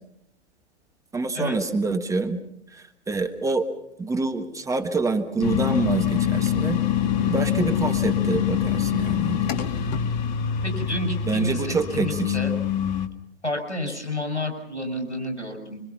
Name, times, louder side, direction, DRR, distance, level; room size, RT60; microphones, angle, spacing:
voice 1, 1.1-2.4 2.7-3.7 4.0-6.8 7.2-9.4 11.2-12.4, right 3 dB, 10° right, 6 dB, 1.4 m, -26 dB
sound 1, 5.4-13.1, left 9 dB, 40° left, 1.7 m, -25 dB
voice 2, 10.6-12.5 13.4-15.8, left 1 dB, 85° left, 3 dB, 6.4 m, -30 dB
26.0 x 24.5 x 5.7 m, 0.74 s
figure-of-eight pair, 105°, 34 cm